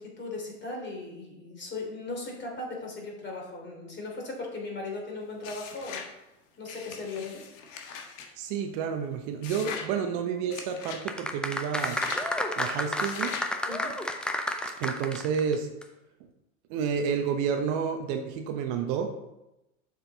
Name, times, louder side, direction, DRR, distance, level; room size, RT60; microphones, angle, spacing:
voice 1, 0.0-6.0 6.6-7.4 13.6-13.9, left 3 dB, 25° left, -1 dB, 3.0 m, -37 dB
sound 1, 5.4-6.1 6.7-8.3 9.4-9.9 10.5-11.0 11.8-12.3 13.0-13.5, left 6 dB, 60° left, 1.5 m, -40 dB
voice 2, 8.4-12.0 12.6-13.3 14.8-15.7 16.7-19.2, right 6 dB, 50° right, 5 dB, 1.0 m, -30 dB
sound 2, 11.0-15.5 15.8-15.9, left 1 dB, ahead, 0.4 m, -30 dB
7.1 x 6.2 x 4.0 m, 0.91 s
hypercardioid pair, 100°, 43 cm